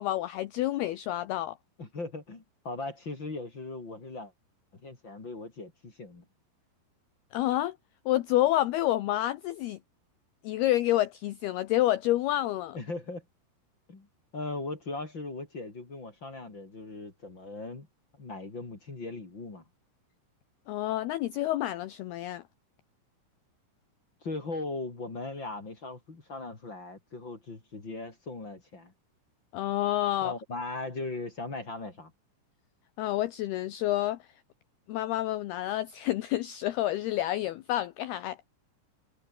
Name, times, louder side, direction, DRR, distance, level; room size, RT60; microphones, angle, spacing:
voice 1, 0.0-1.6 7.3-7.8 8.1-9.8 10.4-12.8 20.7-22.4 29.5-30.3 33.0-34.2 34.9-38.4, left 14 dB, 80° left, 2.3 m, -28 dB
voice 2, 1.8-4.3 4.7-6.2 12.7-13.2 13.9-14.1 14.3-17.9 18.2-19.6 24.2-28.9 30.2-32.1, left 2 dB, 25° left, 3.6 m, -39 dB
omnidirectional pair, 5.8 m